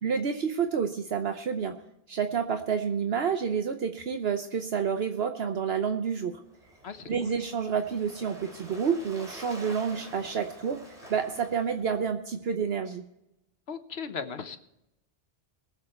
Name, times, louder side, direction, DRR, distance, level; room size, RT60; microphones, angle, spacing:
voice 1, 0.0-1.7 2.1-6.4 7.1-13.0, right 6 dB, 70° right, 6 dB, 1.1 m, -29 dB
Waves surf, 6.4-12.1, equal, 35° right, 2.8 m, -48 dB
voice 2, 6.8-7.3 13.7-14.6, left 6 dB, 75° left, 9 dB, 1.3 m, -37 dB
21.5 x 7.4 x 4.4 m, 0.84 s
omnidirectional pair, 1.1 m